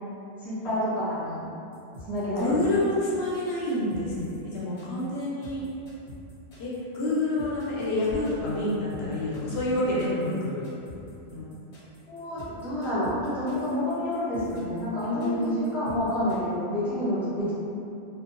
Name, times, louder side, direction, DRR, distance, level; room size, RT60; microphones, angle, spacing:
voice 1, 0.4-1.4 2.0-2.5 12.1-17.5, left 1 dB, ahead, -12 dB, 0.5 m, -29 dB
sound 1, 1.7-16.3, equal, 40° left, 0.8 m, -47 dB
voice 2, 2.4-5.6 6.6-10.7 11.3-11.5 15.0-15.9, left 1 dB, 70° left, -7 dB, 0.8 m, -28 dB
2.6 x 2.3 x 2.5 m, 2.7 s
omnidirectional pair, 1.2 m